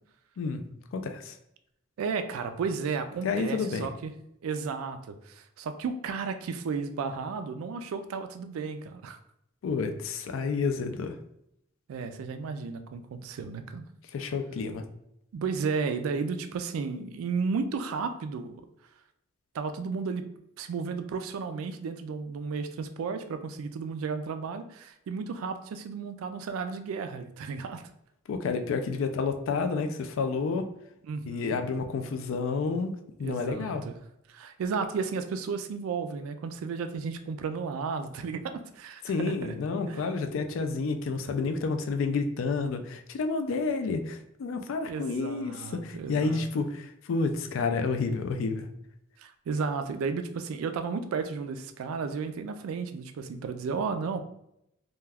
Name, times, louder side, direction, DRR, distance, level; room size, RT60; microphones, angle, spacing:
voice 1, 0.9-1.4 3.2-3.9 9.6-11.1 14.1-14.8 28.3-30.7 31.3-33.8 39.0-48.7, left 4 dB, 70° left, 7 dB, 0.3 m, -30 dB
voice 2, 2.0-4.1 4.4-9.2 11.9-13.8 15.3-18.5 19.5-20.2 20.6-27.8 31.1-31.6 33.2-33.9 34.3-39.5 39.9-40.0 44.9-46.4 49.2-54.2, right 5 dB, 90° right, 9 dB, 0.3 m, -33 dB
2.3 x 2.2 x 3.3 m, 0.77 s
head